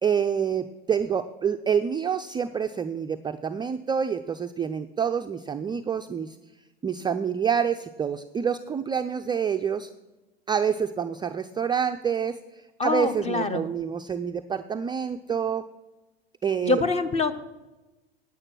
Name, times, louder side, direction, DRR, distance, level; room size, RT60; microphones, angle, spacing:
voice 1, 0.0-6.4 6.8-9.9 10.5-15.6 16.4-16.8, right 7 dB, 15° right, 7 dB, 0.4 m, -27 dB
voice 2, 12.8-13.6 16.6-17.4, left 3 dB, 20° left, 12 dB, 1.0 m, -25 dB
9.4 x 8.7 x 6.1 m, 1.1 s
hypercardioid pair, 90°, 31 cm